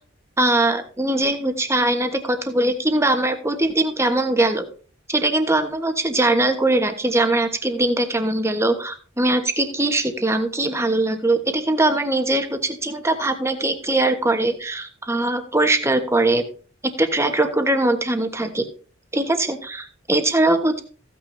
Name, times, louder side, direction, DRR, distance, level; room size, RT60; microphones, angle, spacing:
voice 1, 0.4-4.6 5.1-16.4 17.0-18.6 19.1-20.8, right 2 dB, 15° right, 6 dB, 1.3 m, -21 dB
15.0 x 9.1 x 2.8 m, 0.40 s
head